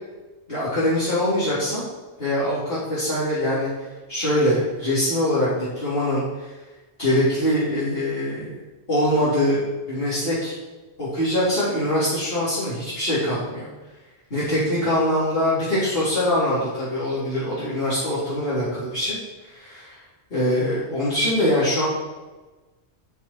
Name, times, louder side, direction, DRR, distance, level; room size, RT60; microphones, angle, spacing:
voice 1, 0.5-1.8 2.2-6.5 7.0-8.6 8.9-9.6 9.9-10.5 11.0-13.7 14.3-20.0 20.3-21.8, left 1 dB, 60° left, -11 dB, 3.6 m, -23 dB
12.0 x 6.0 x 5.8 m, 1.2 s
omnidirectional pair, 1.1 m